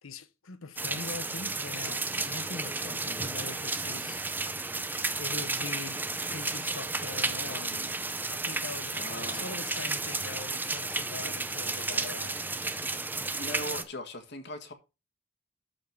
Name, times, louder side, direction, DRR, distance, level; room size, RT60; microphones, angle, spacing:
voice 1, 0.0-4.3 5.2-12.4, left 4 dB, 75° left, 0.9 m, -43 dB
sound 1, 0.8-13.8, right 3 dB, 10° right, 0.6 m, -33 dB
voice 2, 8.9-9.5 11.2-11.3 13.3-14.7, left 1 dB, 55° left, 1.7 m, -39 dB
12.5 x 4.5 x 4.6 m
head